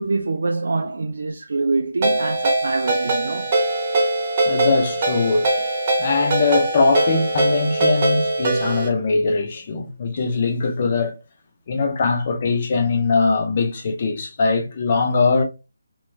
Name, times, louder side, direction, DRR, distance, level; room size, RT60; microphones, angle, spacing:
voice 1, 0.0-3.5, right 3 dB, 55° right, 0.3 m, -25 dB
Ringtone, 2.0-8.9, right 2 dB, 25° right, 0.9 m, -21 dB
voice 2, 4.5-5.6 6.0-11.2 11.7-15.4, left 4 dB, 25° left, 0.4 m, -21 dB
3.0 x 2.2 x 2.4 m
hypercardioid pair, 175°, 0 cm